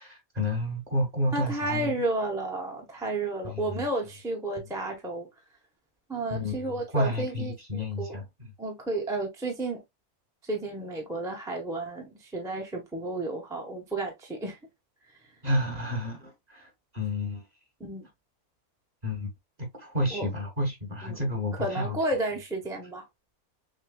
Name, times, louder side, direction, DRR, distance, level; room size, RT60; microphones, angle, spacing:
voice 1, 0.0-2.0 3.4-3.8 6.3-8.5 15.4-17.5 19.0-19.3 19.6-22.0, left 1 dB, 30° right, 1.1 m, -31 dB
voice 2, 1.3-5.3 6.1-8.2 8.6-9.8 10.4-14.6 15.1-15.2 17.8-18.1 20.1-20.3 21.0-21.2 21.6-23.0, right 2 dB, 5° right, 0.7 m, -32 dB
6.4 x 2.2 x 2.3 m
omnidirectional pair, 1.6 m